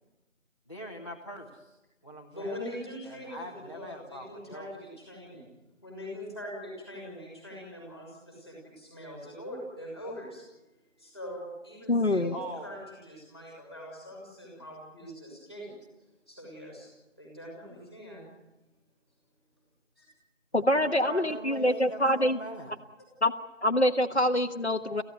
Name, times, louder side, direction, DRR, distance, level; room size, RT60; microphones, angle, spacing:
voice 1, 0.7-2.6 3.1-4.7 12.3-12.8 20.5-22.7, right 1 dB, 25° left, -3 dB, 1.5 m, -42 dB
voice 2, 2.3-5.5 5.8-10.4 11.0-15.7 16.3-16.9 17.2-18.3 20.0-20.1 21.9-22.1, equal, 5° right, -10 dB, 5.1 m, -42 dB
voice 3, 11.9-12.3 20.5-22.4 23.2-23.3 23.6-25.0, left 1 dB, 60° left, 6 dB, 1.3 m, -25 dB
27.0 x 16.0 x 9.6 m, 1.0 s
figure-of-eight pair, 170°, 38 cm